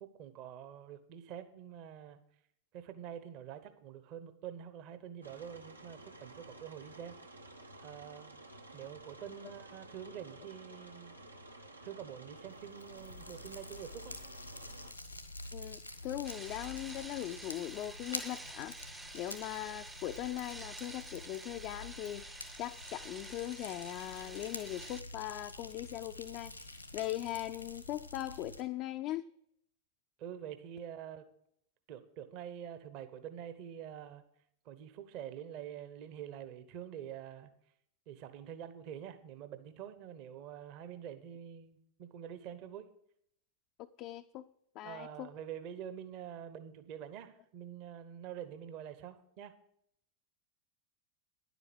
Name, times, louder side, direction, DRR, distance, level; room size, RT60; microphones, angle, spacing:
voice 1, 0.0-2.2 2.7-7.2 7.8-8.3 8.7-11.2 11.8-14.2 30.2-31.3 31.9-34.2 34.6-37.5 38.1-42.9 44.8-49.6, right 9 dB, 45° right, 11 dB, 1.0 m, -46 dB
sound 1, 5.2-14.9, right 1 dB, 80° right, 1.1 m, -53 dB
Fire, 12.4-28.6, left 2 dB, 90° left, 1.3 m, -48 dB
voice 2, 15.5-29.3 43.8-44.5 44.8-45.3, left 14 dB, 40° left, 7 dB, 0.4 m, -40 dB
sound 2, 16.2-25.0, right 2 dB, 10° right, 0.5 m, -49 dB
10.5 x 8.1 x 6.1 m, 0.69 s
figure-of-eight pair, 90°, 0 cm